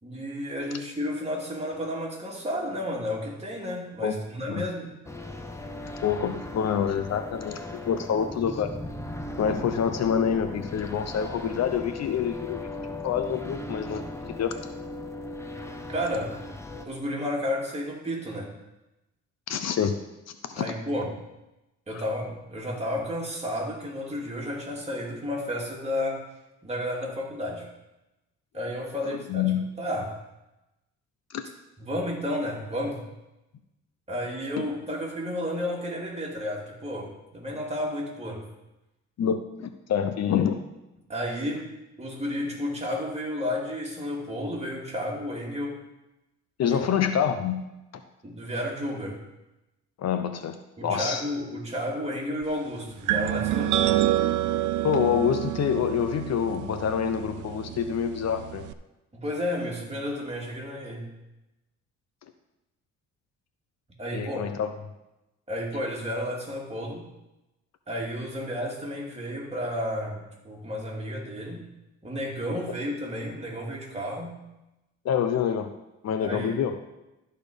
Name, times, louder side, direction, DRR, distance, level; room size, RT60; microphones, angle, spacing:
voice 1, 0.0-4.9 15.9-16.4 16.9-18.5 20.6-21.2 21.9-26.2 26.6-27.7 28.5-29.5 29.8-30.2 31.8-33.0 34.1-38.5 41.1-41.7 42.0-45.8 46.6-46.8 48.2-49.2 50.8-54.0 59.1-61.1 64.0-64.4 65.5-67.1 67.9-71.7 72.0-74.4 76.2-76.6, left 1 dB, 20° right, -2 dB, 2.6 m, -32 dB
sound 1, 5.0-16.8, left 2 dB, 10° left, 0.9 m, -38 dB
voice 2, 6.0-8.7 9.4-12.6 13.0-14.0 14.4-14.5 19.5-19.9 20.4-20.6 21.9-22.0 29.1-29.6 31.3-31.4 39.2-40.6 46.6-47.6 50.0-50.6 50.8-51.2 54.8-58.6 64.1-64.7 75.0-75.7 76.0-76.8, left 8 dB, 60° left, 8 dB, 0.8 m, -26 dB
sound 2, 53.1-58.7, right 13 dB, 80° right, 0.5 m, -28 dB
13.0 x 4.4 x 5.1 m, 0.96 s
cardioid pair, 90°, 30 cm